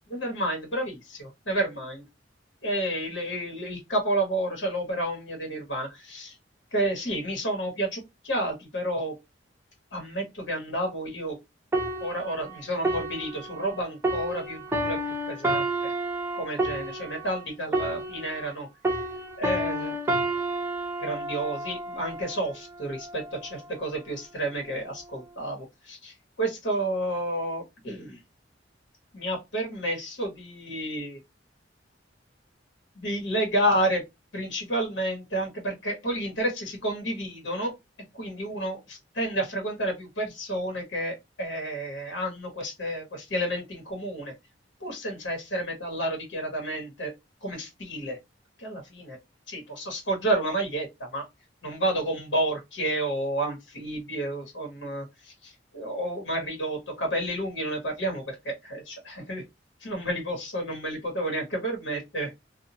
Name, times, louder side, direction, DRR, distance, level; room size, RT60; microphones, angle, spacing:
voice 1, 0.1-2.0 2.6-6.3 6.7-9.1 9.9-11.4 12.0-15.0 15.3-15.9 16.3-18.7 19.4-20.0 21.0-28.2 29.1-31.2 32.9-34.0 34.3-37.7 38.1-44.3 44.8-47.1 47.4-48.2 48.6-49.2 49.5-51.2 51.6-59.4 59.8-62.3, right 1 dB, 70° left, 1.4 m, -30 dB
sound 1, 11.7-18.6 18.8-22.4 23.1-23.3, right 1 dB, 15° right, 0.6 m, -30 dB
2.7 x 2.3 x 2.7 m
head